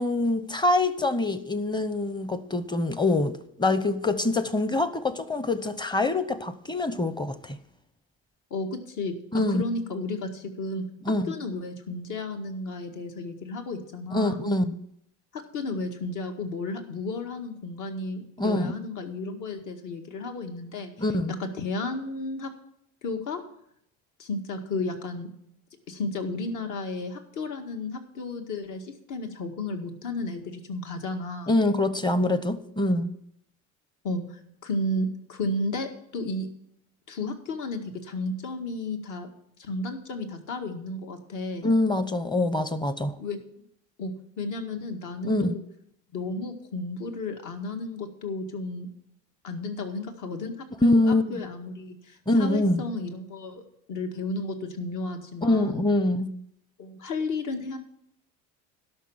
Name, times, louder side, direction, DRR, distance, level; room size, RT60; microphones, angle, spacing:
voice 1, 0.0-7.6 9.3-9.6 11.1-11.3 14.1-14.8 18.4-18.7 21.0-21.3 31.5-33.1 41.6-43.2 45.2-45.5 50.8-51.4 52.3-52.8 55.4-56.3, left 2 dB, 15° left, 0.8 m, -24 dB
voice 2, 8.5-10.9 11.3-14.5 15.3-20.9 21.4-22.5 23.0-23.4 24.2-25.3 25.9-31.6 34.0-34.2 34.6-36.5 37.1-39.3 39.6-41.7 43.2-43.4 44.0-45.6 46.1-48.9 49.4-50.5 50.8-53.6 53.9-55.9 56.8-57.8, left 2 dB, 60° left, 2.0 m, -33 dB
12.0 x 6.1 x 7.2 m
supercardioid pair, 100°, 35 cm